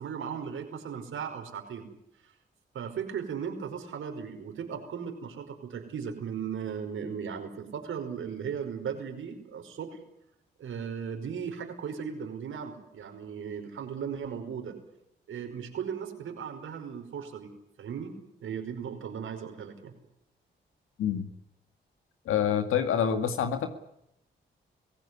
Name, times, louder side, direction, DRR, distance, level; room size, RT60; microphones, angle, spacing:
voice 1, 0.0-1.9 2.2-2.3 2.7-10.0 10.6-14.7 15.3-17.5 17.8-19.9, right 7 dB, 75° right, 5 dB, 5.2 m, -37 dB
voice 2, 22.3-23.7, left 8 dB, 85° left, 8 dB, 2.2 m, -26 dB
23.5 x 17.0 x 9.8 m, 0.80 s
supercardioid pair, 50°, 21 cm